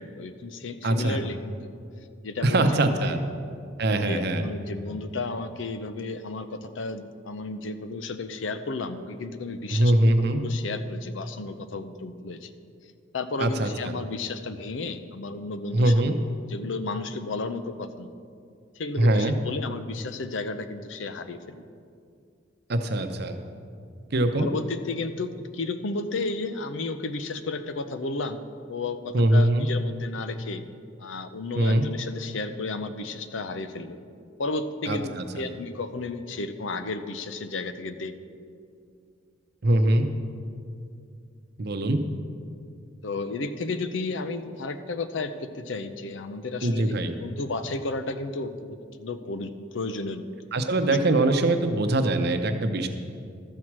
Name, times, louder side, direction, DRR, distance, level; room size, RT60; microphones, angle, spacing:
voice 1, 0.0-1.7 2.2-2.6 3.1-3.2 3.9-9.9 10.3-12.5 13.1-16.2 16.5-18.1 18.8-21.6 24.4-28.4 28.7-30.6 31.0-34.0 34.4-38.1 43.0-50.2, left 3 dB, 75° left, 10 dB, 0.6 m, -33 dB
voice 2, 0.8-1.2 2.4-3.2 3.8-4.4 9.7-10.4 13.4-13.7 15.7-16.1 19.0-19.3 22.7-23.4 24.1-24.5 29.1-29.7 31.6-31.9 34.9-35.4 39.6-40.1 41.6-42.0 46.6-47.1 50.5-52.9, right 1 dB, 55° right, 7 dB, 0.7 m, -22 dB
12.5 x 4.7 x 7.3 m, 2.3 s
head